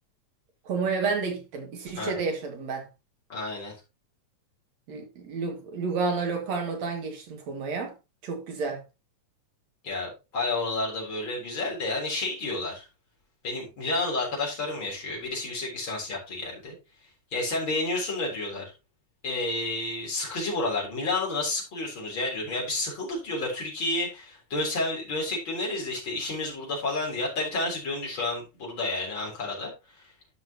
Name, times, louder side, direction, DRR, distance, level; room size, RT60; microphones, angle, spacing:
voice 1, 0.7-2.9 4.9-7.9 8.2-8.8, right 4 dB, 65° right, 3.1 m, -30 dB
voice 2, 3.3-3.7 9.8-12.9 13.4-16.7 17.3-18.7 19.2-29.7, left 2 dB, 40° left, 4.4 m, -30 dB
13.0 x 5.7 x 2.9 m
omnidirectional pair, 3.3 m